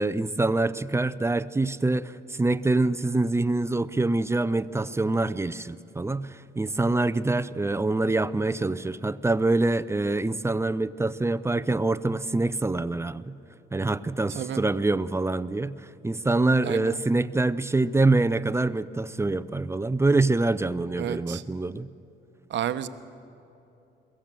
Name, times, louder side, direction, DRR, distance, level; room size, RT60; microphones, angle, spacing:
voice 1, 0.0-13.3 13.7-21.9, right 2 dB, 15° right, 15 dB, 0.5 m, -25 dB
voice 2, 16.6-16.9 21.0-21.4 22.5-22.9, right 10 dB, 65° right, 11 dB, 0.9 m, -31 dB
23.0 x 15.5 x 7.6 m, 2.8 s
cardioid pair, 90°, 20 cm